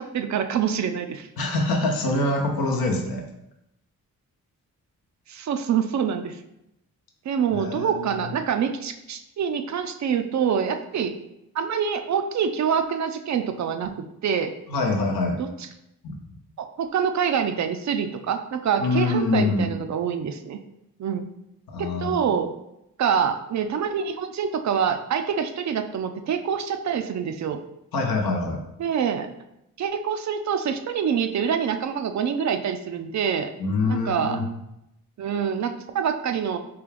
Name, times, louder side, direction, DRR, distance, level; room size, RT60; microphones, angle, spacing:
voice 1, 0.0-1.3 5.3-6.4 7.3-11.1 11.5-14.5 15.4-15.5 16.6-20.6 21.0-21.2 21.8-22.5 23.0-27.6 28.8-29.3 29.8-33.5 33.9-34.4 35.2-36.6, right 7 dB, 50° right, 8 dB, 0.4 m, -26 dB
voice 2, 1.4-3.2 7.5-8.3 14.7-15.4 16.0-16.3 18.8-19.7 21.7-22.2 27.9-28.6 33.6-34.4, left 2 dB, 75° left, 1 dB, 0.8 m, -25 dB
3.8 x 2.4 x 3.3 m, 0.83 s
supercardioid pair, 50°, 36 cm